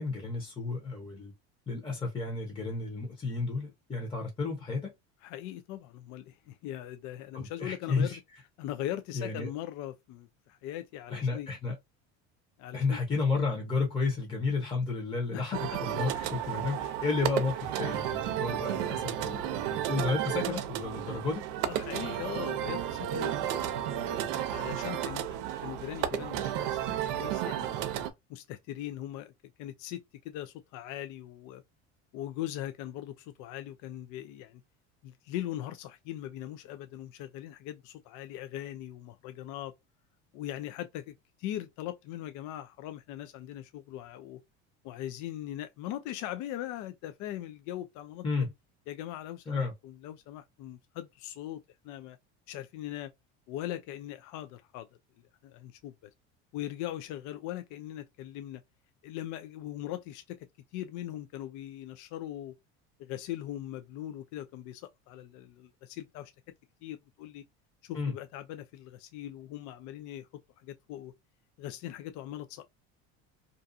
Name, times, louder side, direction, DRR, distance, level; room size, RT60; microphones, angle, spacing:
voice 1, 0.0-1.3 1.7-4.9 7.3-8.2 9.1-9.5 11.1-11.8 12.7-21.5 48.2-48.5 49.5-49.7 67.9-68.1, left 4 dB, 15° left, 0.9 m, -32 dB
voice 2, 5.2-8.2 8.6-11.5 12.6-13.0 15.3-15.6 16.1-16.3 16.8-16.9 18.5-18.9 21.6-27.9 28.3-29.3 29.6-31.6 32.1-34.6 35.0-39.7 40.3-44.4 44.8-48.2 48.9-52.2 52.5-53.1 53.5-54.9 55.4-56.1 56.5-58.6 59.0-60.5 60.7-62.5 63.0-66.3 66.8-67.4 67.8-70.3 70.6-71.1 71.6-72.6, left 13 dB, 60° left, 0.4 m, -40 dB
sound 1, 15.5-28.1, right 11 dB, 80° right, 0.6 m, -33 dB
2.6 x 2.3 x 2.5 m
supercardioid pair, 105°, 34 cm